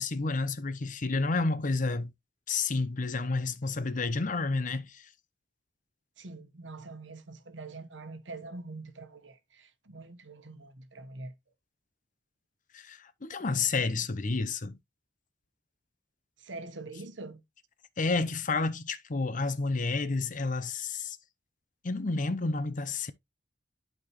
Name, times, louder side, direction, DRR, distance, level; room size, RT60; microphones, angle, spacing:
voice 1, 0.0-2.1 2.5-5.1 12.7-14.8 18.0-21.2 21.8-23.1, left 3 dB, 45° left, 0.8 m, -30 dB
voice 2, 6.2-11.3 16.4-17.4, right 3 dB, 80° right, 1.2 m, -44 dB
11.5 x 4.4 x 3.1 m
head